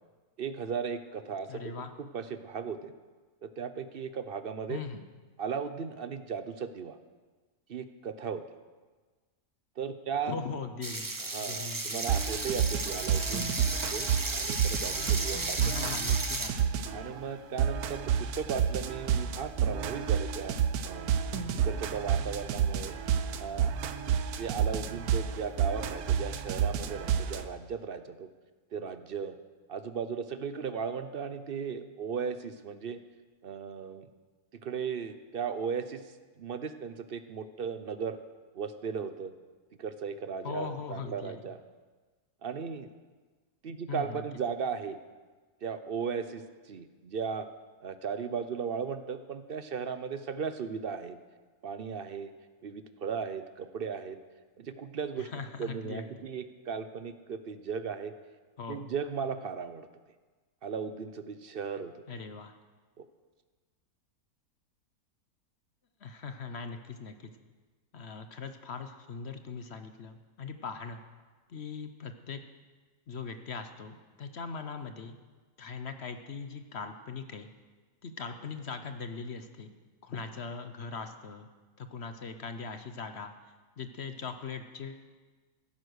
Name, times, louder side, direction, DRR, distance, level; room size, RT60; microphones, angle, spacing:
voice 1, 0.4-1.7 2.0-2.9 3.4-4.8 5.4-7.0 7.7-8.4 9.8-10.3 11.2-15.8 16.9-21.1 21.6-23.0 23.4-23.7 24.4-28.3 28.7-29.4 29.7-33.0 33.4-34.1 34.6-36.0 36.4-38.2 38.5-39.3 39.8-41.6 42.4-42.9 43.6-45.0 45.6-47.5 47.8-51.2 51.6-52.3 52.6-54.2 54.6-55.3 55.6-58.1 58.7-59.9 60.6-61.9 63.0-63.1, right 6 dB, 50° right, 10 dB, 0.7 m, -36 dB
voice 2, 1.5-1.9 4.7-5.0 10.3-11.1 11.4-12.0 15.4-17.1 40.4-41.4 43.9-44.2 55.2-56.2 58.6-58.8 62.1-62.5 66.0-67.2 67.9-71.0 71.5-72.4 73.1-75.2 75.6-77.5 78.0-79.7 80.0-81.5 81.8-83.3 83.8-85.1, left 5 dB, 50° left, 8 dB, 0.9 m, -40 dB
sound 1, 10.8-16.5, right 2 dB, 20° right, 0.7 m, -34 dB
House loop patterns combined, 12.1-17.1 17.6-27.4, right 8 dB, 80° right, 1.2 m, -30 dB
16.0 x 9.7 x 6.4 m, 1.3 s
omnidirectional pair, 1.6 m